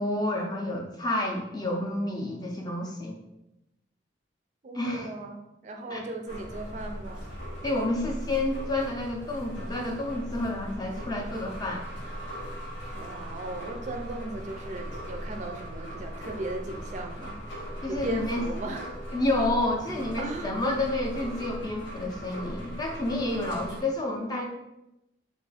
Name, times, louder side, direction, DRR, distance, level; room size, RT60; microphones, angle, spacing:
voice 1, 0.0-3.2 4.7-5.1 5.9-6.0 7.6-11.8 17.8-18.4 19.1-24.4, left 1 dB, 20° left, 1 dB, 0.5 m, -29 dB
voice 2, 4.6-7.3 12.9-17.4 17.9-19.0 20.2-20.5, right 2 dB, 40° right, 4 dB, 0.4 m, -37 dB
sound 1, 6.3-23.8, equal, 90° left, 1.0 m, -39 dB
3.0 x 2.4 x 4.0 m, 0.89 s
head